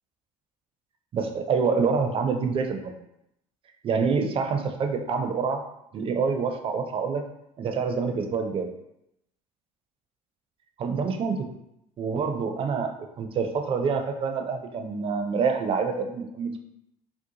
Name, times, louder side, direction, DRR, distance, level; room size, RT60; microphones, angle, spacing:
voice 1, 1.1-2.9 3.8-5.6 5.9-7.2 7.6-8.7 10.8-11.5 12.0-16.6, right 5 dB, 30° right, 5 dB, 0.4 m, -26 dB
2.6 x 2.1 x 2.8 m, 0.81 s
hypercardioid pair, 65°, 18 cm